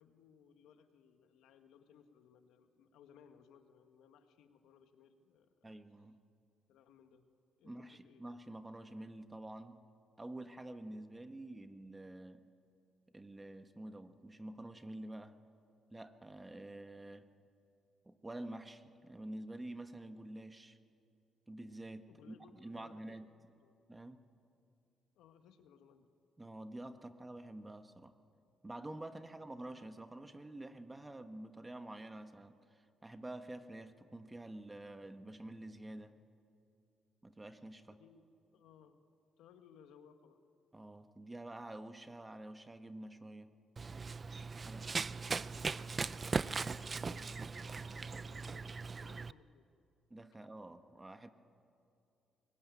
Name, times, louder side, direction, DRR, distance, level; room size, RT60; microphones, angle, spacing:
voice 1, 0.0-5.8 6.7-7.3 7.6-8.2 22.1-23.0 23.6-23.8 25.2-26.1 29.3-29.4 37.9-38.3 38.5-39.0 39.4-40.4 45.1-49.7, left 7 dB, 90° left, 7 dB, 1.7 m, -63 dB
voice 2, 5.6-6.2 7.6-9.8 10.2-12.4 13.1-15.4 15.9-17.3 18.0-20.8 21.5-22.3 22.6-23.3 23.9-24.2 26.4-28.1 28.6-36.2 37.2-38.0 40.7-43.6 44.6-45.2 50.1-51.3, right 1 dB, 15° right, 8 dB, 1.4 m, -48 dB
Run, 43.8-49.3, right 4 dB, 35° right, 0.5 m, -39 dB
24.0 x 22.0 x 9.4 m, 2.6 s
cardioid pair, 90°, 0 cm